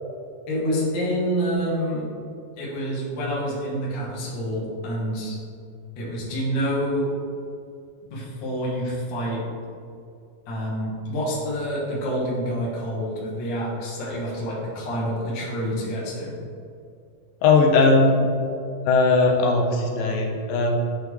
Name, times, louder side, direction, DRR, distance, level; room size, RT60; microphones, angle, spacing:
voice 1, 0.5-2.1 2.6-5.4 6.0-7.1 8.1-9.4 10.5-16.3, equal, 60° left, -6 dB, 1.2 m, -27 dB
voice 2, 17.4-18.1 18.9-20.8, left 3 dB, 80° left, 0 dB, 2.3 m, -18 dB
8.8 x 3.5 x 3.1 m, 2.5 s
omnidirectional pair, 4.1 m